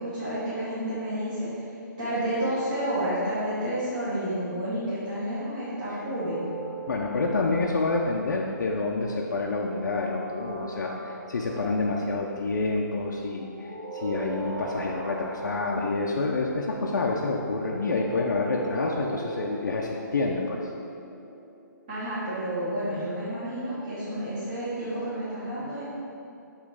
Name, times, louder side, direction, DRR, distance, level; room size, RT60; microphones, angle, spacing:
voice 1, 0.0-1.5 2.0-6.4 21.9-25.8, right 1 dB, 25° right, -13 dB, 1.3 m, -30 dB
sound 1, 6.0-8.5 10.2-12.0 13.4-16.1 17.4-22.0, right 3 dB, 75° right, 1.3 m, -40 dB
voice 2, 6.9-13.5 13.9-20.6, left 3 dB, 65° left, -1 dB, 0.6 m, -28 dB
8.3 x 3.2 x 4.7 m, 2.7 s
hypercardioid pair, 180°, 11 cm